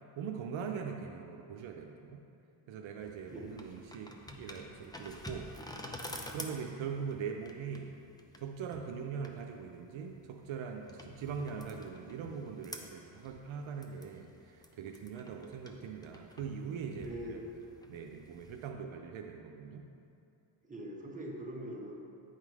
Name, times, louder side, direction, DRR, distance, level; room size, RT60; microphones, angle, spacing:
voice 1, 0.2-2.2 2.7-4.1 4.4-5.7 6.1-7.9 8.4-17.4 17.9-19.9, right 6 dB, 70° right, 2 dB, 0.7 m, -41 dB
sound 1, 3.0-18.7, left 1 dB, 10° left, 0.6 m, -50 dB
voice 2, 16.9-17.4 20.6-22.1, right 1 dB, 15° right, -3 dB, 1.3 m, -42 dB
9.7 x 3.7 x 4.8 m, 2.6 s
cardioid pair, 85°, 48 cm